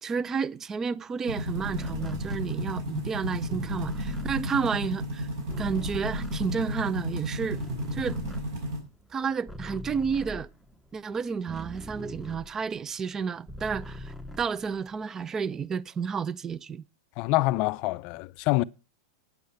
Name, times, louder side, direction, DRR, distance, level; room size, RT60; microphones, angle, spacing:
voice 1, 0.0-5.3 5.6-7.6 7.9-8.2 9.1-10.5 10.9-16.8, right 6 dB, 20° right, 0.5 m, -31 dB
sound 1, 1.2-8.8, equal, 65° right, 5.1 m, -33 dB
sound 2, 1.5-7.1 7.4-12.9 13.2-15.1, equal, ahead, 0.8 m, -41 dB
voice 2, 17.2-18.6, left 20 dB, 50° left, 0.4 m, -26 dB
9.4 x 7.9 x 5.6 m
hypercardioid pair, 120°, 2 cm